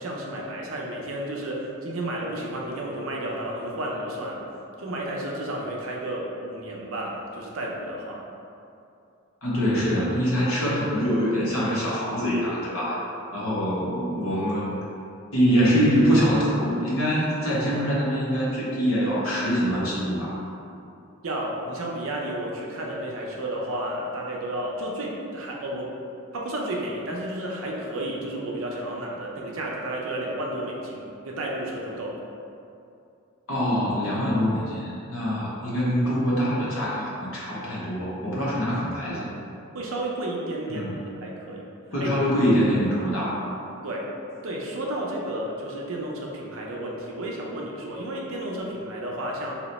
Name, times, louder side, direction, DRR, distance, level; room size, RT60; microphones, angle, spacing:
voice 1, 0.0-4.4 4.8-8.2 21.2-25.9 26.3-32.2 39.7-41.7 42.0-42.1 43.8-44.1 44.4-49.5, right 1 dB, 65° right, -2 dB, 0.5 m, -32 dB
voice 2, 9.4-13.0 13.3-14.8 15.3-20.4 33.5-39.3 40.7-41.0 41.9-43.5, equal, 70° left, -7 dB, 0.9 m, -24 dB
2.8 x 2.1 x 4.0 m, 2.6 s
head